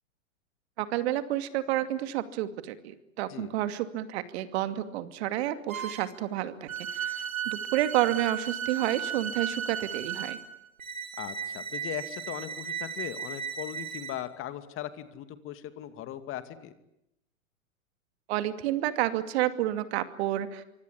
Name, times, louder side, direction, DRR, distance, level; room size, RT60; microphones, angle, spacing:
voice 1, 0.8-6.7 6.9-10.4 18.3-20.6, right 13 dB, 50° right, 11 dB, 2.5 m, -30 dB
sound 1, 5.7-6.2 6.7-14.2, right 8 dB, 85° right, 3.6 m, -35 dB
voice 2, 11.2-16.7, left 12 dB, 30° left, 11 dB, 2.5 m, -39 dB
25.5 x 25.0 x 8.4 m, 0.83 s
hypercardioid pair, 110°, 40 cm